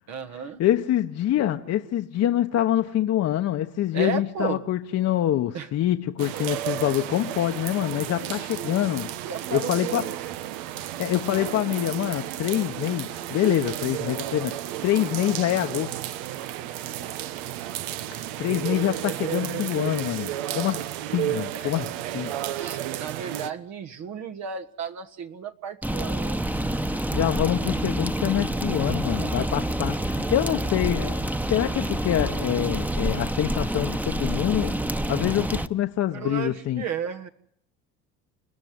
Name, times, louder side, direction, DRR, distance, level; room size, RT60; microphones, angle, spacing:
voice 1, 0.1-0.6 3.9-4.6 5.5-5.7 7.9-8.7 9.2-10.1 17.0-17.2 21.5-21.7 22.6-26.4 29.2-29.5 36.1-37.3, right 7 dB, 60° right, 1.6 m, -34 dB
voice 2, 0.6-9.2 9.5-10.1 11.0-14.6 14.8-15.9 18.4-21.9 22.1-22.3 27.1-34.7 35.1-36.8, left 12 dB, 55° left, 1.2 m, -25 dB
sound 1, 6.2-23.5, right 13 dB, 85° right, 1.4 m, -32 dB
sound 2, 25.8-35.7, right 1 dB, 5° right, 1.2 m, -27 dB
29.5 x 13.5 x 9.6 m
supercardioid pair, 90°, 32 cm